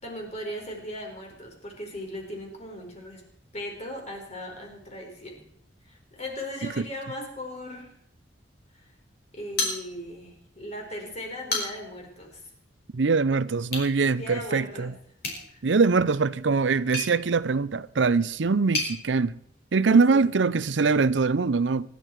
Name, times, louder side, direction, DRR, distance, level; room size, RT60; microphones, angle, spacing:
voice 1, 0.0-3.2 3.5-5.5 5.8-7.9 9.3-12.4 14.1-15.0 15.5-15.6 19.9-20.3, equal, 35° left, 4.7 m, -38 dB
sound 1, 9.6-10.3 10.7-10.8 11.3-12.0 13.6-13.9 15.2-18.9, left 2 dB, 55° left, 5.3 m, -33 dB
voice 2, 12.9-14.9 15.6-19.4 19.7-21.9, right 4 dB, 75° right, 0.6 m, -23 dB
24.5 x 12.0 x 4.6 m
head